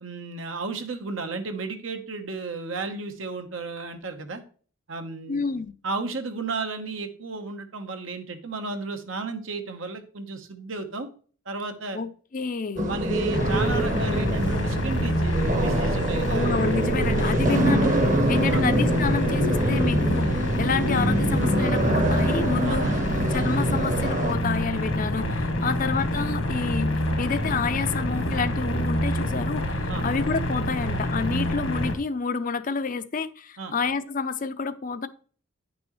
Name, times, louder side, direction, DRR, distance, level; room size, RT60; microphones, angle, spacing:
voice 1, 0.0-4.4 4.9-5.4 5.8-11.1 11.4-12.0 12.8-16.6 18.5-18.7 22.6-22.9 23.4-23.6 25.6-25.7 29.9-30.1 33.6-33.7, right 3 dB, 80° right, 6 dB, 1.1 m, -33 dB
voice 2, 5.3-5.7 11.9-12.9 16.3-17.9 18.3-22.9 23.2-26.9 27.2-35.1, left 4 dB, 40° left, 11 dB, 0.5 m, -29 dB
sound 1, 12.8-24.4, right 1 dB, 40° right, 1.0 m, -25 dB
sound 2, 13.3-31.9, left 1 dB, 80° left, 1.7 m, -27 dB
9.8 x 6.1 x 3.1 m, 0.42 s
head